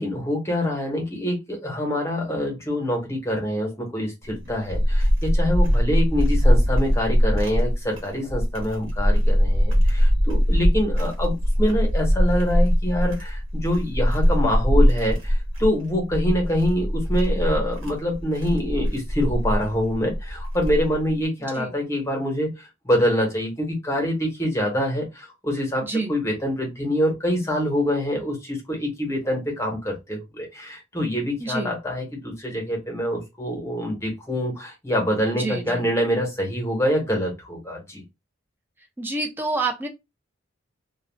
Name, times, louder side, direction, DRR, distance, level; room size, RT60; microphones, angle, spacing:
voice 1, 0.0-38.0, equal, 15° left, 0.9 m, -25 dB
sound 1, 4.2-21.1, equal, 80° right, 1.1 m, -21 dB
voice 2, 25.8-26.2 31.4-31.7 35.3-35.9 39.0-39.9, right 3 dB, 10° right, 0.4 m, -28 dB
2.3 x 2.2 x 3.3 m
head